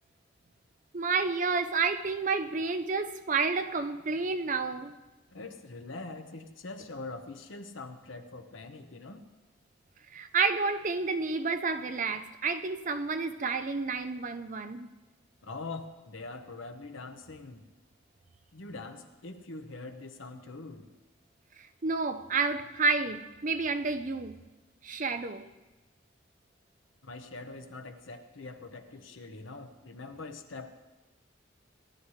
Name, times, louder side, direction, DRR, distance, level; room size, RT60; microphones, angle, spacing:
voice 1, 0.9-5.0 10.1-14.9 21.8-24.4 24.8-25.4, right 4 dB, 40° right, 9 dB, 0.6 m, -30 dB
voice 2, 5.3-9.3 15.4-17.7 18.5-20.9 27.0-30.7, left 3 dB, 80° left, 7 dB, 1.0 m, -43 dB
17.5 x 11.5 x 3.3 m, 1.1 s
head